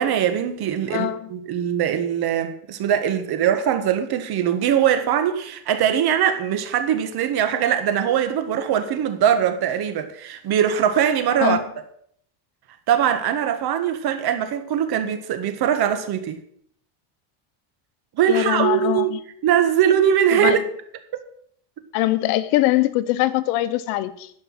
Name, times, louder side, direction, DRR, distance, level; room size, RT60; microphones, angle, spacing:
voice 1, 0.0-11.6 12.9-16.4 18.2-19.1 19.4-20.6 21.1-21.2, right 9 dB, 50° right, 1.6 m, -21 dB
voice 2, 0.9-1.3 11.4-11.6 18.3-19.2 20.3-20.6 21.9-24.3, left 16 dB, 80° left, 1.0 m, -22 dB
11.5 x 5.4 x 7.4 m
cardioid pair, 125°, 50 cm